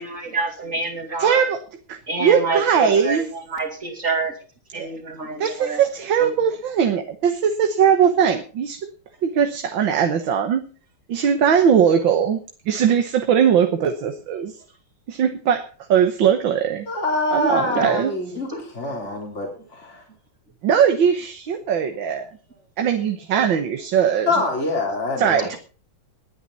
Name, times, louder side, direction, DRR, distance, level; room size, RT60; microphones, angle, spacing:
voice 1, 0.0-1.5 2.1-4.4 4.7-5.8 6.2-6.3 17.7-17.9 18.5-18.6 25.4-25.5, right 3 dB, 35° right, -2 dB, 3.1 m, -28 dB
voice 2, 1.2-1.6 1.9-3.3 4.7-4.9 5.4-8.8 9.2-10.6 11.1-14.5 15.1-16.9 17.3-18.1 20.6-22.3 22.8-24.3 25.2-25.6, right 7 dB, 70° right, 7 dB, 1.9 m, -20 dB
voice 3, 16.9-18.5 18.7-20.0 24.3-25.6, left 2 dB, 30° left, -1 dB, 4.0 m, -25 dB
21.5 x 9.5 x 4.1 m, 0.38 s
omnidirectional pair, 2.3 m